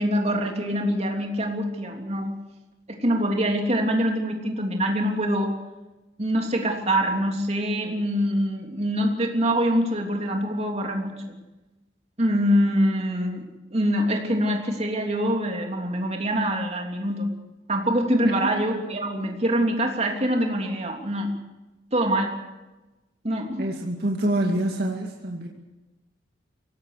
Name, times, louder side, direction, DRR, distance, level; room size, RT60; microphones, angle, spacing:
voice 1, 0.0-2.3 2.9-5.5 6.2-11.2 12.2-13.4 13.7-17.3 17.7-21.3 21.9-22.3 23.2-23.7, equal, 35° right, 2 dB, 3.2 m, -24 dB
voice 2, 23.6-25.5, right 1 dB, 60° right, 0 dB, 2.4 m, -26 dB
24.5 x 18.0 x 6.7 m, 1.1 s
head